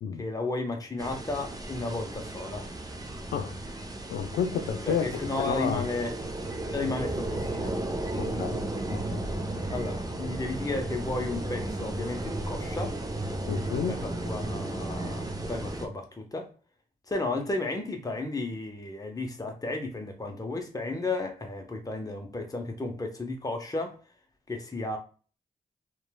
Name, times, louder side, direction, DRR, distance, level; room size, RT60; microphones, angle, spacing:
voice 1, 0.2-2.7 4.9-6.1 6.7-7.7 9.7-13.0 13.9-16.5 17.1-24.0 24.5-25.0, left 2 dB, 20° left, 0.8 m, -33 dB
sound 1, 1.0-15.9, right 1 dB, 20° right, 0.6 m, -34 dB
voice 2, 4.1-5.1 5.4-5.9 8.2-8.6 8.9-9.2 13.5-14.0, left 7 dB, 85° left, 0.4 m, -30 dB
3.0 x 2.2 x 2.2 m
supercardioid pair, 45°, 17 cm